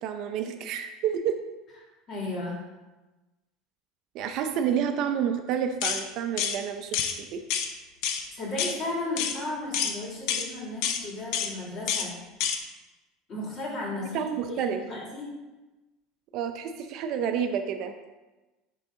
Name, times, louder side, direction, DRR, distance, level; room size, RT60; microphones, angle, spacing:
voice 1, 0.0-1.4 4.1-7.4 14.1-14.8 16.3-17.9, right 8 dB, 50° right, 7 dB, 0.5 m, -29 dB
voice 2, 2.1-2.6 8.3-12.1 13.3-14.2 14.6-15.4, left 2 dB, 35° left, -4 dB, 2.5 m, -34 dB
sound 1, 5.8-6.0 6.4-6.6 6.9-7.1 7.5-7.7 8.0-8.2 8.6-8.8 9.2-9.4 9.7-9.9 10.3-10.5 10.8-11.0 11.3-11.5 11.9-12.1 12.4-12.6, left 8 dB, 65° left, 0.7 m, -27 dB
10.5 x 3.8 x 3.7 m, 1.1 s
cardioid pair, 145°, 0 cm